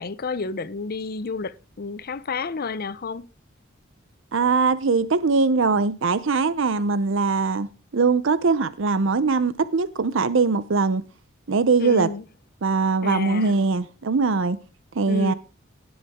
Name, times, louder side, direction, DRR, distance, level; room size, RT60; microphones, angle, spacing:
voice 1, 0.0-3.3 11.8-12.2 13.0-13.5 15.1-15.3, left 4 dB, 50° left, 0.6 m, -30 dB
voice 2, 4.3-11.0 11.5-12.1 12.6-14.6 15.0-15.3, right 4 dB, 70° right, 0.6 m, -21 dB
17.5 x 7.2 x 3.6 m
head